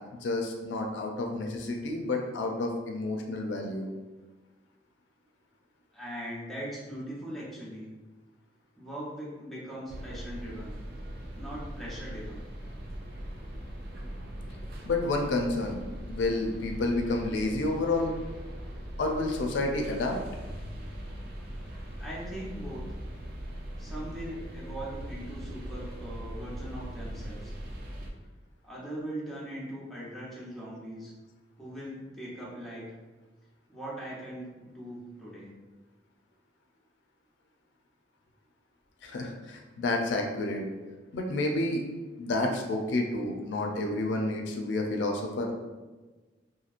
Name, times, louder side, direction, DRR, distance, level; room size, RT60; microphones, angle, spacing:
voice 1, 0.1-3.9 14.8-15.8 16.1-18.1 19.0-20.2 39.0-40.6 41.1-41.8 42.2-45.5, left 2 dB, 75° left, 2 dB, 0.4 m, -30 dB
voice 2, 5.9-7.9 8.8-10.8 11.3-12.4 22.0-22.8 23.8-27.5 28.6-31.1 31.6-32.9 33.7-35.5, right 1 dB, ahead, -7 dB, 0.7 m, -40 dB
sound 1, 9.9-28.1, right 1 dB, 55° right, 0.4 m, -40 dB
2.9 x 2.6 x 2.4 m, 1.2 s
head